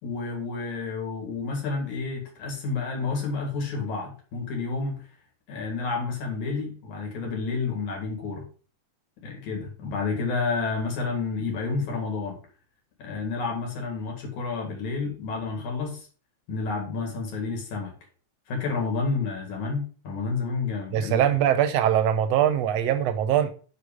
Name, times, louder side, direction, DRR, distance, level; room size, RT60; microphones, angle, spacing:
voice 1, 0.0-5.0 5.5-8.4 9.2-12.4 13.0-16.1 16.5-17.9 18.5-21.4, left 4 dB, 70° left, 3.3 m, -30 dB
voice 2, 20.9-23.5, right 10 dB, 75° right, 1.6 m, -22 dB
6.5 x 5.3 x 5.0 m
omnidirectional pair, 3.5 m